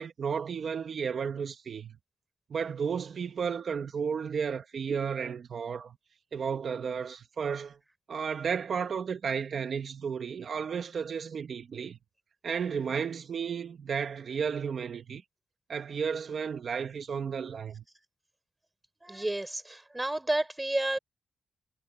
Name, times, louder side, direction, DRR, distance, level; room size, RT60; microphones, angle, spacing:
voice 1, 0.0-2.0 2.5-6.0 6.3-7.8 8.1-12.0 12.4-15.2 15.7-17.8, right 6 dB, 60° right, 2.0 m, -33 dB
voice 2, 19.0-21.0, right 1 dB, 15° right, 6.9 m, -31 dB
cardioid pair, 95°, 0 cm